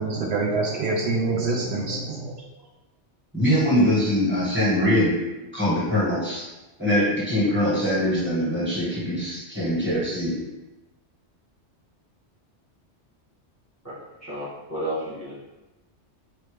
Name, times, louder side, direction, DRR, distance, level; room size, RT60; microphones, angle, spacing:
voice 1, 0.0-2.4, right 3 dB, 70° right, -1 dB, 0.8 m, -26 dB
voice 2, 3.3-5.1 5.5-6.5 6.8-10.3, equal, 10° right, -8 dB, 1.4 m, -22 dB
voice 3, 13.8-15.4, right 1 dB, 15° left, -8 dB, 0.9 m, -32 dB
4.4 x 2.9 x 3.3 m, 1.1 s
omnidirectional pair, 1.2 m